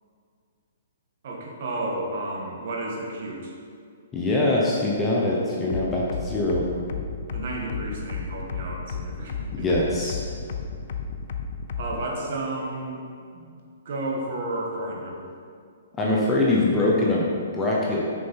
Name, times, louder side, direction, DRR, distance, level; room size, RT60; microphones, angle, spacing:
voice 1, 1.2-3.5 7.3-9.6 10.3-10.4 11.8-13.6 13.8-15.2, right 1 dB, 40° right, -1 dB, 1.6 m, -32 dB
voice 2, 4.1-6.6 9.5-10.2 16.0-18.0, left 2 dB, 10° left, -4 dB, 0.8 m, -23 dB
sound 1, 5.7-12.1, left 7 dB, 45° left, 0.6 m, -32 dB
9.2 x 6.5 x 4.6 m, 2.3 s
hypercardioid pair, 175°, 0 cm